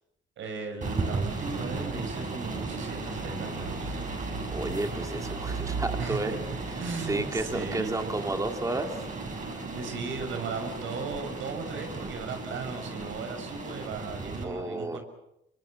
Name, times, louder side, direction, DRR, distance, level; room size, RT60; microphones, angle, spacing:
voice 1, 0.4-4.0 6.0-6.4 6.8-8.1 9.7-15.0, right 4 dB, 75° right, 6 dB, 6.4 m, -36 dB
sound 1, 0.8-14.4, right 3 dB, 40° right, 7.7 m, -35 dB
voice 2, 4.5-6.3 6.7-9.1 14.4-15.0, right 2 dB, 15° right, 5 dB, 2.2 m, -32 dB
27.5 x 22.5 x 7.5 m, 0.83 s
cardioid pair, 90°, 20 cm